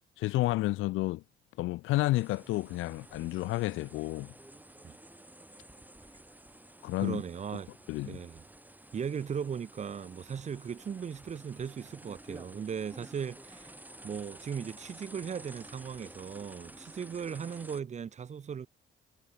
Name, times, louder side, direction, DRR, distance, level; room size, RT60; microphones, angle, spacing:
voice 1, 0.2-1.2 1.6-4.3 6.8-7.2 7.9-8.2, left 18 dB, 85° left, 0.5 m, -30 dB
sound 1, 2.1-17.8, right 1 dB, 10° right, 3.3 m, -52 dB
voice 2, 7.0-7.7 8.0-8.4 8.9-13.7 14.0-18.7, right 7 dB, 35° right, 0.6 m, -38 dB
cardioid pair, 90°, 20 cm